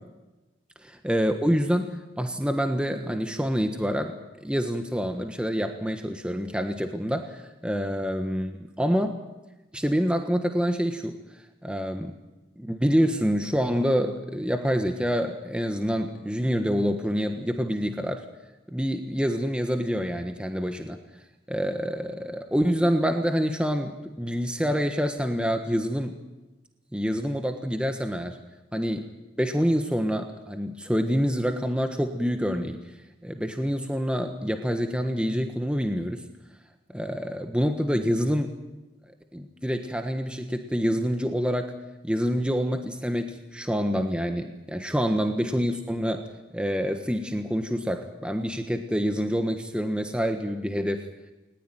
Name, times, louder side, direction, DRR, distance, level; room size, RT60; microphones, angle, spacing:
voice 1, 1.0-9.1 9.7-11.2 11.6-12.2 12.6-18.2 18.7-21.0 21.5-26.2 26.9-28.4 28.7-29.0 29.4-32.8 33.2-36.2 36.9-38.5 39.3-41.7 42.0-46.3 46.5-51.1, equal, 5° right, 5 dB, 1.4 m, -27 dB
20.0 x 20.0 x 9.2 m, 1.1 s
head